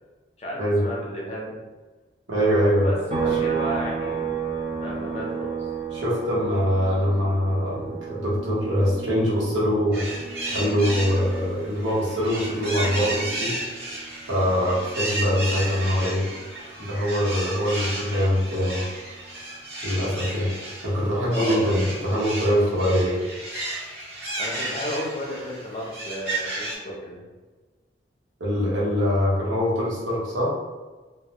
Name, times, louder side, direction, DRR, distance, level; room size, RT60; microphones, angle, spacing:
voice 1, 0.4-1.5 2.8-4.2 4.8-5.7 21.3-21.7 24.4-27.2, equal, 35° left, -4 dB, 0.6 m, -32 dB
voice 2, 2.3-2.9 5.9-10.0 10.5-13.6 14.3-16.2 16.8-18.8 19.8-20.5 20.8-23.2 28.4-30.5, equal, 90° right, -7 dB, 0.9 m, -23 dB
sound 1, 3.1-16.6 17.0-19.2, right 6 dB, 35° right, 0.4 m, -34 dB
sound 2, 9.9-26.8, right 1 dB, 60° right, 0.9 m, -33 dB
2.1 x 2.1 x 2.7 m, 1.3 s
head